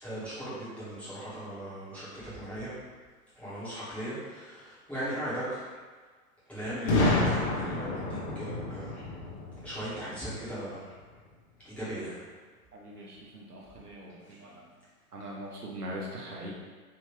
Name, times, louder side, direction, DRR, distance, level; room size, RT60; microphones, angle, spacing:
voice 1, 0.0-2.7 3.3-5.6 6.5-9.1 9.6-10.9 11.6-12.2 14.2-14.3, right 1 dB, 5° left, -13 dB, 1.3 m, -38 dB
Boom, 6.9-10.7, left 2 dB, 40° left, 0.8 m, -29 dB
voice 2, 12.7-14.7 15.1-16.5, equal, 85° right, -3 dB, 1.0 m, -41 dB
3.6 x 2.8 x 3.0 m, 1.5 s
figure-of-eight pair, 115°, 45 cm